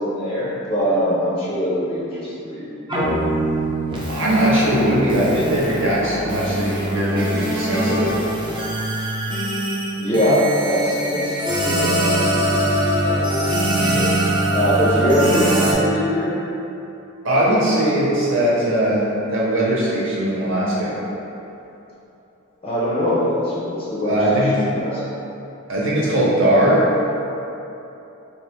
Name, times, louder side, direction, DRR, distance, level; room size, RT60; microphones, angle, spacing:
voice 1, 0.0-2.7 10.0-12.7 13.0-14.1 14.5-16.3 22.6-24.4 24.7-25.2, equal, 25° left, -7 dB, 0.5 m, -22 dB
sound 1, 2.9-15.7, right 1 dB, 20° right, 0.5 m, -22 dB
voice 2, 4.1-8.1 17.2-21.0 24.0-24.6 25.7-26.9, right 1 dB, 60° right, -6 dB, 1.0 m, -19 dB
3.9 x 2.9 x 3.5 m, 2.9 s
head